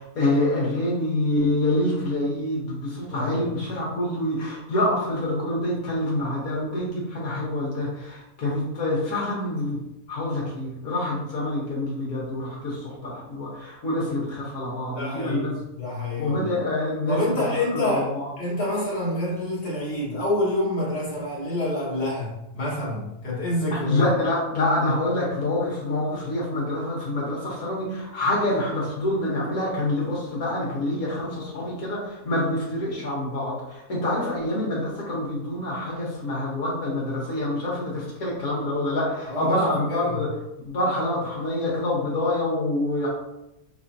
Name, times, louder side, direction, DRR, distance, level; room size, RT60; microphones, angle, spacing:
voice 1, 0.0-9.8 10.1-15.5 16.2-17.2 17.7-18.3 23.7-40.3 40.6-43.1, left 1 dB, 65° left, -5 dB, 1.6 m, -26 dB
voice 2, 3.0-3.4 14.9-16.6 17.1-18.1 18.4-24.1 39.3-40.1, left 1 dB, 40° left, -6 dB, 1.7 m, -27 dB
5.7 x 3.2 x 2.7 m, 0.90 s
omnidirectional pair, 1.7 m